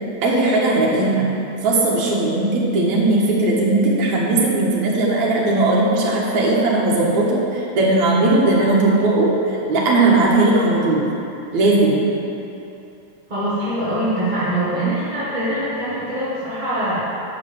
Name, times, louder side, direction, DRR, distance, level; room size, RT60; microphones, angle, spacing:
voice 1, 0.2-1.2 1.6-11.0 11.5-12.0, right 2 dB, 75° right, -4 dB, 2.6 m, -18 dB
voice 2, 13.3-17.1, right 1 dB, 40° right, -10 dB, 0.6 m, -23 dB
8.6 x 4.8 x 6.8 m, 2.9 s
omnidirectional pair, 3.3 m